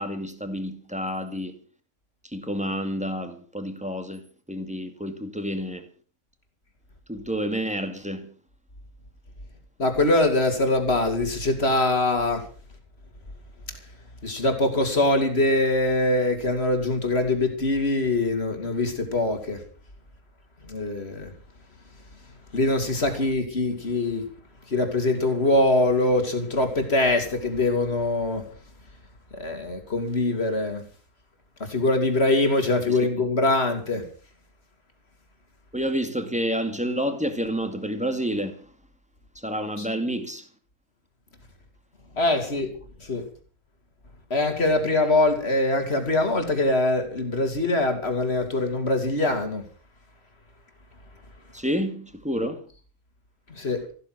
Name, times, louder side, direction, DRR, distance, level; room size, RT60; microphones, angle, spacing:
voice 1, 0.0-1.5 2.2-5.8 7.1-8.3 32.9-33.0 35.7-38.7 39.4-40.5 51.5-52.6, equal, 5° right, 2.1 m, -29 dB
voice 2, 9.8-12.4 14.2-19.6 20.7-21.3 22.5-24.2 24.7-28.4 29.4-30.8 31.6-34.0 39.8-39.9 42.2-42.7 43.0-43.2 44.3-49.6 53.6-53.8, left 2 dB, 40° left, 3.3 m, -23 dB
15.0 x 13.0 x 6.2 m
omnidirectional pair, 1.6 m